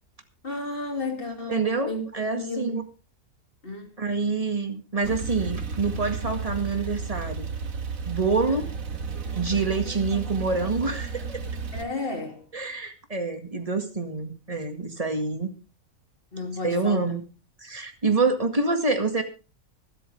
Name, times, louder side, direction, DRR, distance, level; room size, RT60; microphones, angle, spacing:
voice 1, 0.4-2.0 2.3-2.8 3.6-4.0 8.5-8.6 11.7-12.5 16.3-17.1, left 2 dB, 40° left, 3.0 m, -33 dB
voice 2, 1.5-2.9 4.0-7.5 8.1-8.7 9.4-11.4 12.5-15.5 16.6-17.2 17.6-19.2, right 3 dB, 25° right, 2.0 m, -26 dB
Male speech man speaking / Car / Idling, 5.0-11.8, right 5 dB, 70° right, 1.9 m, -33 dB
25.0 x 8.5 x 3.4 m
omnidirectional pair, 1.5 m